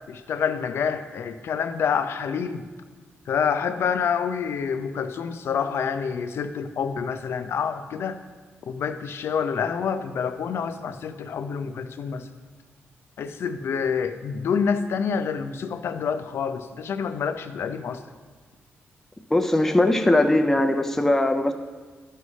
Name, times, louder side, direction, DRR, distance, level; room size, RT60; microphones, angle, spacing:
voice 1, 0.1-2.6 3.3-8.2 8.7-12.3 13.2-18.0, left 6 dB, 65° left, 9 dB, 0.4 m, -27 dB
voice 2, 19.3-21.5, left 1 dB, 10° left, 5 dB, 0.4 m, -20 dB
12.0 x 5.5 x 3.2 m, 1.5 s
wide cardioid pair, 145°, 4 cm